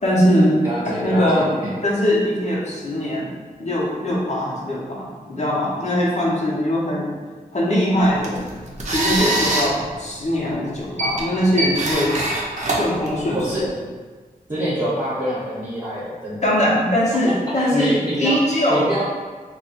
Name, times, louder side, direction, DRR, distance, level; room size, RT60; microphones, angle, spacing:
voice 1, 0.0-3.3 3.6-7.1 7.5-8.5 8.9-12.2 12.8-13.7 16.4-18.9, equal, 50° left, -5 dB, 0.9 m, -21 dB
voice 2, 0.6-1.7 13.3-13.6 14.5-16.5 17.5-18.4 18.7-19.1, right 1 dB, 30° right, -11 dB, 1.0 m, -26 dB
sound 1, 8.0-13.7, right 1 dB, 50° right, 0.7 m, -25 dB
2.6 x 2.3 x 4.1 m, 1.4 s
cardioid pair, 65°, 15 cm